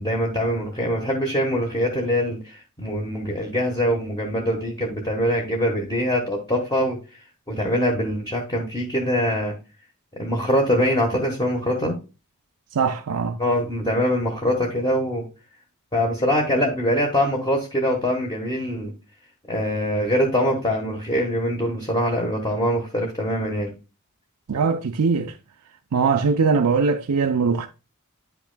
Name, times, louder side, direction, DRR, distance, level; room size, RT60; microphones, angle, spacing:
voice 1, 0.0-7.0 7.5-9.5 10.1-11.9 13.4-15.2 15.9-18.9 19.5-23.7, equal, 20° left, 1.2 m, -23 dB
voice 2, 12.7-13.4 24.5-25.3 25.9-27.7, right 5 dB, 85° right, 0.5 m, -21 dB
9.3 x 5.9 x 2.2 m
head